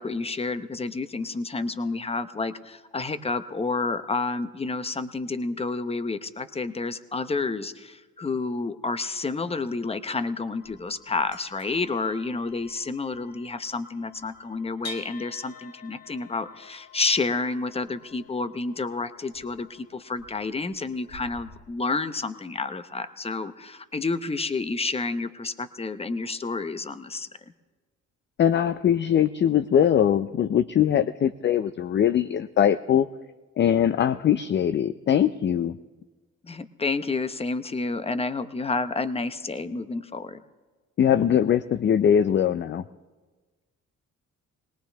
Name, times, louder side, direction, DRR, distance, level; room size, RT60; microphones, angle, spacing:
voice 1, 0.0-27.3 36.4-40.4, left 3 dB, 20° left, 11 dB, 0.8 m, -30 dB
sound 1, 10.6-21.6, left 3 dB, 55° left, 2.3 m, -48 dB
voice 2, 28.4-33.1 33.6-35.8 41.0-42.8, left 9 dB, 40° left, 12 dB, 0.4 m, -21 dB
20.5 x 19.0 x 3.4 m, 1.3 s
cardioid pair, 90°, 30 cm